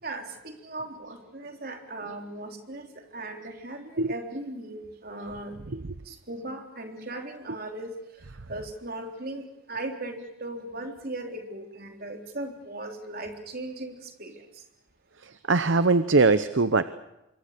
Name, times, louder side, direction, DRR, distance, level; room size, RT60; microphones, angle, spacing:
voice 1, 0.0-5.6 6.1-7.9 8.5-14.6, right 2 dB, 45° right, 3 dB, 3.6 m, -38 dB
voice 2, 15.5-16.8, right 3 dB, 60° right, 12 dB, 0.8 m, -21 dB
26.5 x 23.5 x 6.7 m, 0.92 s
head